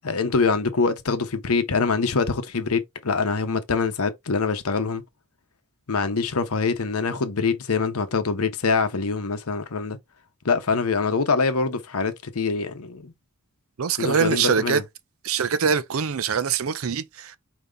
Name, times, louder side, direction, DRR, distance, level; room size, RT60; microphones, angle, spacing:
voice 1, 0.0-5.0 5.9-10.0 10.4-13.1 14.0-14.8, left 4 dB, 75° left, 0.9 m, -24 dB
voice 2, 13.8-14.8 15.2-17.4, right 6 dB, 65° right, 0.5 m, -23 dB
5.3 x 2.9 x 3.4 m
head